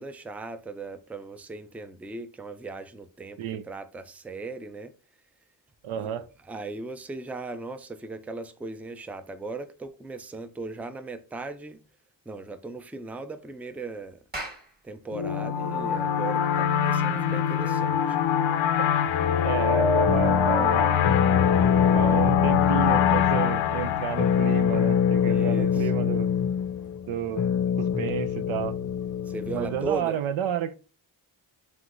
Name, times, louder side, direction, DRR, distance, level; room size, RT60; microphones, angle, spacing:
voice 1, 0.0-3.4 3.6-4.9 5.9-6.1 6.5-11.8 12.3-14.2 14.8-18.2 25.2-25.9 29.3-30.2, right 3 dB, 5° right, 0.4 m, -37 dB
voice 2, 5.8-6.3 19.4-21.0 21.9-26.3 27.1-27.4 27.8-28.8 29.5-30.7, right 9 dB, 85° right, 0.6 m, -31 dB
Clapping, 14.3-19.0, right 1 dB, 20° right, 1.4 m, -44 dB
sound 1, 15.1-25.5, left 8 dB, 75° left, 0.6 m, -24 dB
sound 2, 20.1-30.0, left 8 dB, 40° left, 0.6 m, -25 dB
4.5 x 3.5 x 2.5 m
cardioid pair, 60°, 48 cm